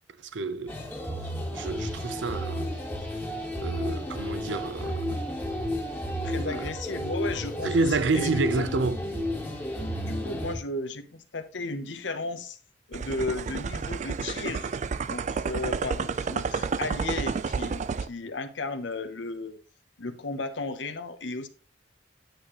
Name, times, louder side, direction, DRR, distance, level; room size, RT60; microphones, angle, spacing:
voice 1, 0.2-0.8 1.5-2.7 3.6-5.2 6.4-6.7 7.6-9.0, right 4 dB, 85° right, 0.6 m, -29 dB
sound 1, 0.7-10.5, equal, 10° left, 1.4 m, -32 dB
voice 2, 6.2-8.7 10.1-12.6 12.9-14.7 15.1-19.6 20.0-21.5, left 2 dB, 85° left, 0.9 m, -34 dB
sound 2, 12.9-18.1, right 5 dB, 40° right, 0.4 m, -30 dB
9.2 x 6.8 x 3.0 m
head